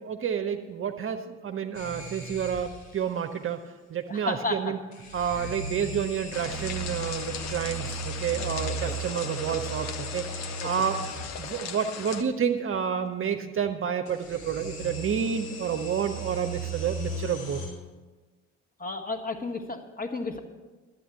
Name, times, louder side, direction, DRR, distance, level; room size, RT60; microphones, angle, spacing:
voice 1, 0.0-3.6 3.9-4.8 5.1-11.0 11.4-17.6, right 8 dB, 35° right, 6 dB, 0.8 m, -29 dB
sound 1, 1.7-3.0 4.9-11.6 14.1-17.7, right 2 dB, 75° left, 2.7 m, -37 dB
voice 2, 4.1-4.8 5.3-5.5 8.7-9.0 10.6-10.7 18.8-20.4, left 3 dB, 25° left, 6 dB, 1.5 m, -33 dB
sound 2, 6.3-12.2, left 7 dB, 45° left, 1.0 m, -38 dB
12.5 x 8.2 x 7.0 m, 1.3 s
figure-of-eight pair, 45°, 37 cm